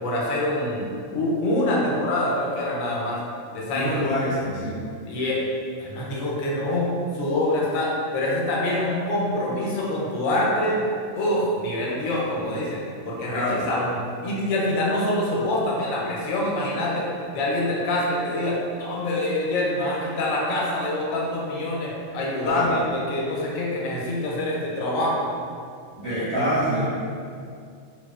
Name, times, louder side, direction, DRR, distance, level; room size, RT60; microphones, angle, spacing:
voice 1, 0.0-3.2 3.5-4.1 5.0-5.4 5.8-10.8 11.1-17.1 17.3-25.2 26.1-26.5, left 1 dB, 90° left, -4 dB, 1.0 m, -25 dB
voice 2, 3.7-4.8 13.3-13.7 22.4-22.8 26.0-26.8, equal, 25° right, -15 dB, 0.9 m, -26 dB
2.9 x 2.1 x 2.3 m, 2.3 s
omnidirectional pair, 1.4 m